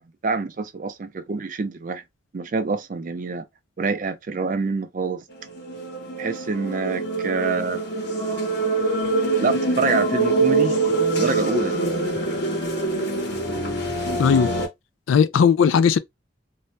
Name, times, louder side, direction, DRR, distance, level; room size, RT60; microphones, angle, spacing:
voice 1, 0.0-2.0 2.3-3.4 3.8-5.2 6.2-7.8 9.4-10.8 11.2-11.8, right 4 dB, 40° right, 0.4 m, -26 dB
sound 1, 5.3-14.7, right 3 dB, 60° left, 1.1 m, -24 dB
voice 2, 14.2-14.5 15.1-16.0, left 7 dB, 85° left, 0.3 m, -17 dB
2.6 x 2.1 x 3.2 m
head